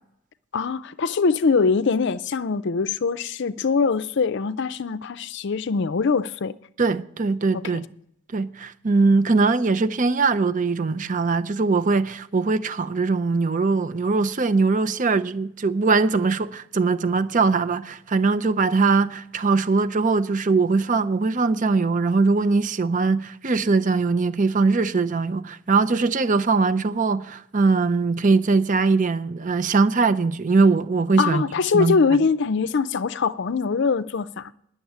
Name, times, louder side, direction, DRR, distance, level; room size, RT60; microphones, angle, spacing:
voice 1, 0.5-6.6 7.5-7.6 31.2-34.5, left 5 dB, 55° left, 0.5 m, -23 dB
voice 2, 6.8-7.8 8.3-31.4 31.7-32.0, right 4 dB, 35° right, 0.5 m, -21 dB
10.0 x 7.1 x 9.3 m
head